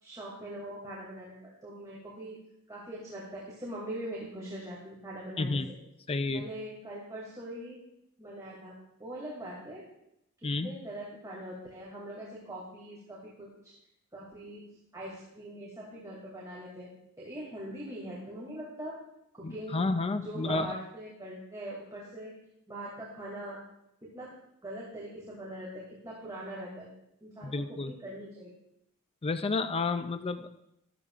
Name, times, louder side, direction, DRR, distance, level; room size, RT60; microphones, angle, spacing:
voice 1, 0.0-2.4 2.7-5.6 6.3-7.8 8.2-8.7 9.0-9.8 10.4-13.7 14.1-14.6 14.9-16.9 17.2-19.0 19.3-19.7 20.2-22.3 22.7-23.6 24.0-24.3 24.6-26.9 27.2-28.5, right 1 dB, 15° right, -6 dB, 2.4 m, -42 dB
voice 2, 5.4-5.7 6.1-6.4 10.4-10.7 19.4-20.8 27.4-27.9 29.2-30.5, left 3 dB, 25° left, 10 dB, 0.4 m, -31 dB
13.5 x 12.5 x 2.4 m, 0.80 s
head